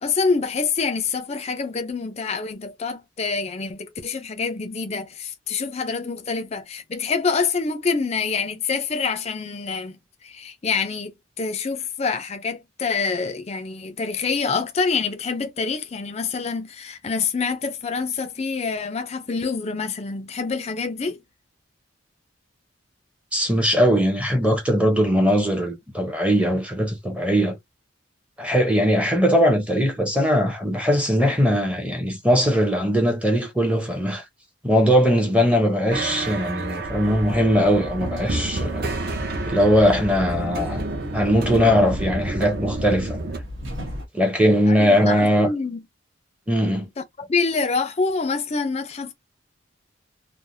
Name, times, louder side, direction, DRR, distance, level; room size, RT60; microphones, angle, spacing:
voice 1, 0.0-10.0 10.2-21.2 44.7-45.8 47.2-49.1, left 4 dB, 30° left, 0.5 m, -26 dB
voice 2, 23.3-27.6 28.4-34.2 34.6-38.9 39.5-40.9 41.1-43.2 44.1-45.5 46.5-46.9, equal, 5° right, 0.7 m, -20 dB
sound 1, 35.9-43.4, right 2 dB, 50° right, 0.7 m, -30 dB
sound 2, 36.8-44.1, left 1 dB, 70° right, 1.1 m, -36 dB
3.2 x 2.0 x 2.6 m
head